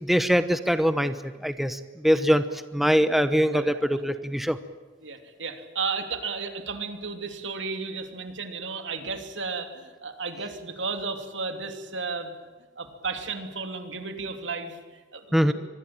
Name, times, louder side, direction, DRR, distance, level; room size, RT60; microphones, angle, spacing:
voice 1, 0.0-4.6 15.3-15.5, equal, ahead, 11 dB, 1.0 m, -23 dB
voice 2, 5.0-12.5 12.8-15.5, right 4 dB, 80° right, 6 dB, 3.0 m, -34 dB
25.0 x 21.0 x 8.9 m, 1.3 s
head